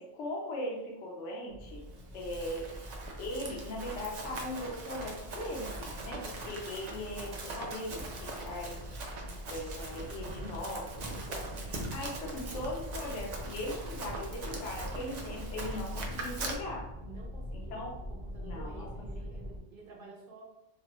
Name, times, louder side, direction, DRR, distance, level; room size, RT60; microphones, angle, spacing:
voice 1, 0.0-1.8 2.1-2.9 3.2-8.8 9.5-16.9 17.5-17.9 18.4-18.9, left 1 dB, 70° left, -1 dB, 0.9 m, -39 dB
sound 1, 1.5-19.6, left 1 dB, 35° left, 0.8 m, -43 dB
Run, 2.0-16.5, right 3 dB, 85° right, 0.3 m, -42 dB
voice 2, 17.0-20.4, right 4 dB, 55° right, -1 dB, 0.7 m, -51 dB
3.0 x 2.2 x 2.9 m, 0.93 s
omnidirectional pair, 1.3 m